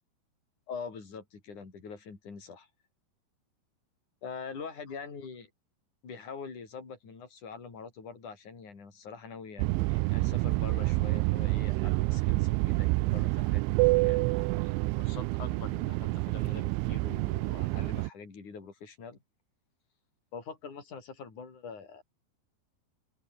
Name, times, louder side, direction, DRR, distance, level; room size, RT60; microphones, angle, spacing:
voice 1, 0.7-2.7 4.2-5.5 6.0-13.6 14.0-14.7 15.0-19.2 20.3-22.0, left 5 dB, 40° left, 7.1 m, -44 dB
sound 1, 9.6-18.1, right 23 dB, 90° right, 3.0 m, -28 dB
open air
omnidirectional pair, 5.3 m